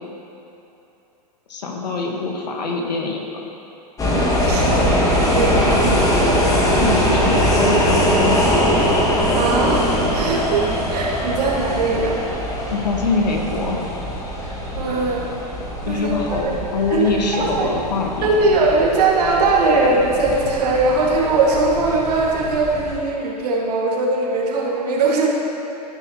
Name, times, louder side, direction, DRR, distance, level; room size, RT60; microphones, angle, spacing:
voice 1, 1.5-3.2 5.6-6.0 6.8-8.6 12.7-13.8 15.9-18.3, left 3 dB, 85° left, 1 dB, 1.4 m, -24 dB
sound 1, 4.0-23.0, equal, 15° left, 1.4 m, -21 dB
voice 2, 4.1-5.0 5.3-6.1 9.3-9.8 10.1-12.2 14.4-15.3 15.9-16.4 16.9-17.1 17.4-17.7 18.2-25.3, right 3 dB, 70° right, -3 dB, 2.0 m, -20 dB
sound 2, 6.0-14.9, right 10 dB, 20° right, 0.9 m, -34 dB
14.0 x 5.7 x 3.0 m, 2.9 s
hypercardioid pair, 120°, 21 cm